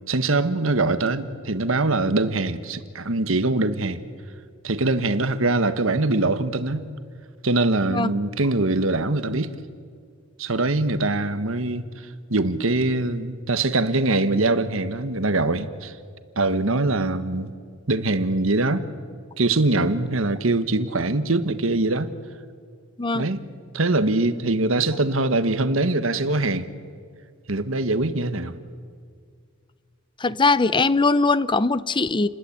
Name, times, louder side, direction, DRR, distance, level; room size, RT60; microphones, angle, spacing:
voice 1, 0.1-4.0 4.6-6.8 7.4-9.5 10.4-11.8 12.3-15.9 16.4-17.5 17.9-18.9 19.4-22.1 23.1-23.4 23.7-26.7 27.5-28.5, right 2 dB, 75° right, 11 dB, 1.4 m, -23 dB
voice 2, 30.2-32.3, left 3 dB, 25° left, 16 dB, 0.6 m, -20 dB
29.5 x 20.5 x 8.7 m, 2.1 s
head